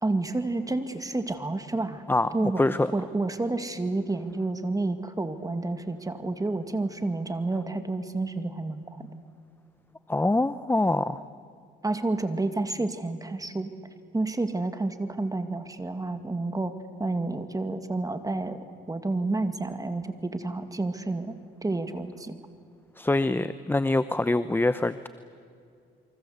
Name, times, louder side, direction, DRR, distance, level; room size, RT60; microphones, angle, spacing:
voice 1, 0.0-2.0 2.3-2.6 2.9-9.0 11.8-13.7 14.1-16.7 17.0-18.6 18.9-22.3, right 2 dB, 15° right, 9 dB, 2.1 m, -30 dB
voice 2, 2.1-2.9 10.1-11.2 23.0-25.1, left 2 dB, 10° left, 14 dB, 0.7 m, -25 dB
28.5 x 24.5 x 8.0 m, 2.3 s
cardioid pair, 90°, 20 cm